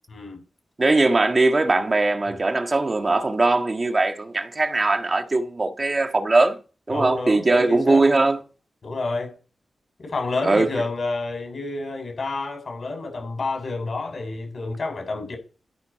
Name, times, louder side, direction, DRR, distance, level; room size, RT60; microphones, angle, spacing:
voice 1, 0.1-0.4 6.9-8.0 8.8-9.3 10.0-15.4, left 3 dB, 50° left, 8.0 m, -29 dB
voice 2, 0.8-6.6 6.9-8.4 10.4-10.7, right 2 dB, 30° right, 1.6 m, -20 dB
15.5 x 9.6 x 4.7 m
wide cardioid pair, 140°, 0 cm